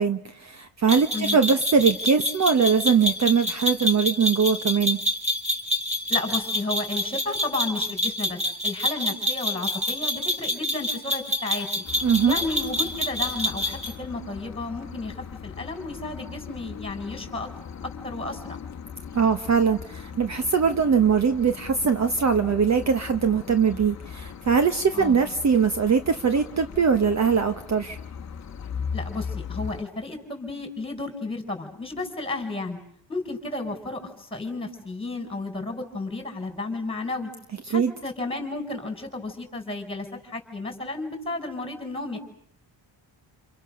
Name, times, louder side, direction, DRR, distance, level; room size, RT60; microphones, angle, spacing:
voice 1, 0.0-5.0 12.0-12.4 19.1-28.0 37.7-37.9, right 6 dB, 35° right, 9 dB, 1.1 m, -21 dB
sound 1, 0.9-13.9, left 1 dB, 15° right, 3.4 m, -27 dB
voice 2, 1.1-1.5 6.1-11.8 12.2-15.1 15.4-17.5 18.0-18.4 24.9-25.2 28.9-32.8 33.1-37.3 37.7-42.2, left 2 dB, 10° left, 5 dB, 5.3 m, -32 dB
sound 2, 11.8-29.8, left 6 dB, 35° left, 1.3 m, -39 dB
29.0 x 28.5 x 6.5 m, 0.65 s
wide cardioid pair, 160°, 46 cm